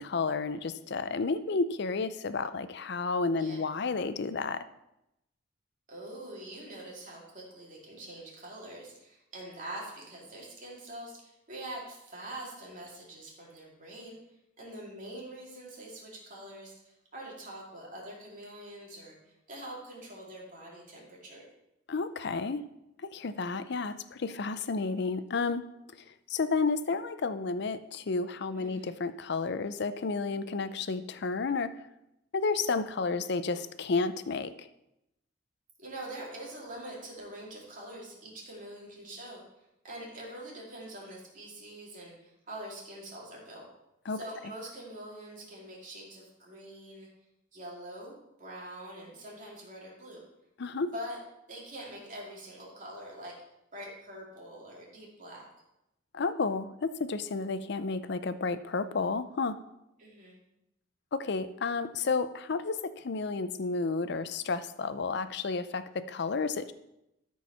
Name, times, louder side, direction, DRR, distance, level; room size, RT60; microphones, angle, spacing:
voice 1, 0.0-4.6 21.9-22.6 23.0-25.6 26.3-31.7 32.3-34.7 44.1-44.2 50.6-50.9 56.1-59.6 61.1-66.7, left 4 dB, 60° left, 13 dB, 0.5 m, -31 dB
voice 2, 5.9-14.2 14.6-21.5 28.5-29.0 35.8-39.4 39.8-43.6 44.1-47.1 47.5-50.2 50.9-51.2 51.5-53.3 53.7-55.5 60.0-60.4, right 1 dB, 45° right, -3 dB, 2.8 m, -44 dB
13.0 x 4.6 x 5.6 m, 0.87 s
head